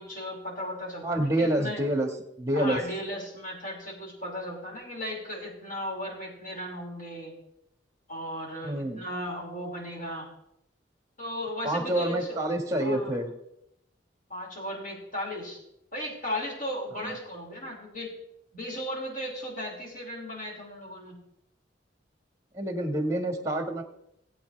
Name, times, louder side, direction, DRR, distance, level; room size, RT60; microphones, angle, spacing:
voice 1, 0.0-1.8 2.5-7.3 8.1-10.3 11.2-12.4 12.8-13.1 14.3-15.6 15.9-18.1 18.5-21.2, equal, 45° left, -5 dB, 5.5 m, -36 dB
voice 2, 1.0-2.1 2.4-2.8 8.6-9.0 11.6-13.3 17.0-17.1 22.5-23.8, right 1 dB, 15° right, 5 dB, 1.8 m, -27 dB
19.0 x 8.6 x 3.4 m, 0.79 s
head